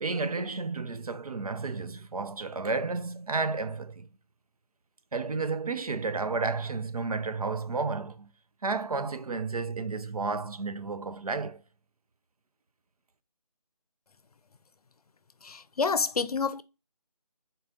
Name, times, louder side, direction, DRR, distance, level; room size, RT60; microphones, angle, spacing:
voice 1, 0.0-4.1 5.1-8.3 8.6-11.6, right 4 dB, 65° right, 0.6 m, -32 dB
voice 2, 15.4-16.6, left 5 dB, 70° left, 0.5 m, -28 dB
4.1 x 3.8 x 2.4 m
figure-of-eight pair, 165°, 20 cm